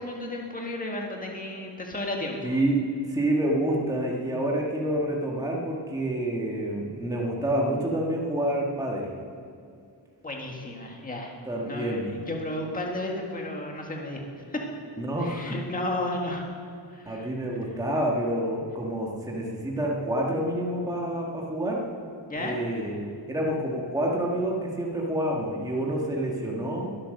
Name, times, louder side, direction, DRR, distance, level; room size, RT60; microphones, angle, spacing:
voice 1, 0.0-2.6 10.2-11.3 11.6-14.2 14.5-14.6 15.2-16.5 16.9-17.3 22.3-22.6, left 1 dB, 20° left, 0 dB, 1.7 m, -33 dB
voice 2, 2.4-2.8 3.1-9.1 11.4-12.1 15.0-15.6 17.1-21.9 22.4-26.9, right 1 dB, 10° right, -2 dB, 1.6 m, -28 dB
22.0 x 9.0 x 6.6 m, 2.3 s
wide cardioid pair, 175°, 43 cm